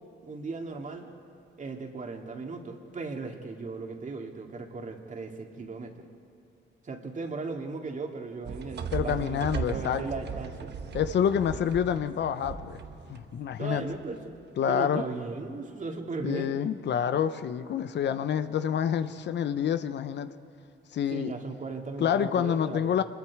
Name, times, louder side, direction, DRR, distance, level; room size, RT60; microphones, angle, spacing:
voice 1, 0.2-1.1 1.6-6.0 6.8-10.7 13.6-14.4 14.7-16.6 21.1-22.9, right 3 dB, 40° right, 3 dB, 2.4 m, -37 dB
sound 1, 8.4-14.4, right 6 dB, 60° right, 1.2 m, -38 dB
voice 2, 8.9-10.0 10.9-12.8 13.1-13.8 14.6-15.0 16.2-20.3 20.9-21.3 22.0-23.0, left 8 dB, 65° left, 11 dB, 0.8 m, -27 dB
25.5 x 21.5 x 4.8 m, 2.8 s
cardioid pair, 90°, 20 cm